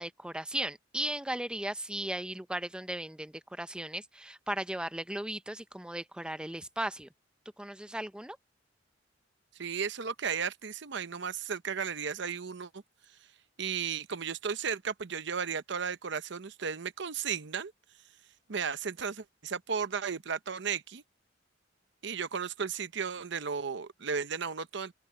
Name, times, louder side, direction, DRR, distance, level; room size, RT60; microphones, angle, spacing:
voice 1, 0.0-7.1 7.6-8.4, right 1 dB, 5° right, 0.6 m, -36 dB
voice 2, 9.6-12.7 13.6-17.7 18.5-21.0 22.0-24.9, right 6 dB, 70° right, 0.8 m, -34 dB
open air
head